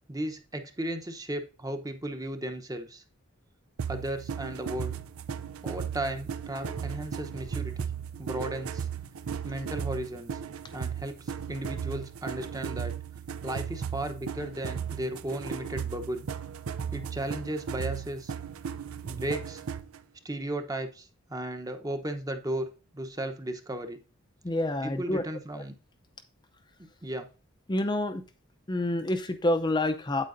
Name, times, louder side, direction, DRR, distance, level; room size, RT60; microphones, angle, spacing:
voice 1, 0.1-3.0 3.9-4.9 5.6-7.7 8.2-8.9 9.4-10.3 10.7-12.9 13.4-16.3 16.9-18.3 19.0-19.6 20.2-24.0 24.8-25.8 27.0-27.3, right 1 dB, 15° right, 0.8 m, -35 dB
sound 1, 3.8-20.0, right 7 dB, 85° right, 0.5 m, -36 dB
voice 2, 24.4-25.2 25.5-25.6 27.7-28.2 28.7-30.2, left 1 dB, 20° left, 0.5 m, -28 dB
8.7 x 8.4 x 2.6 m
head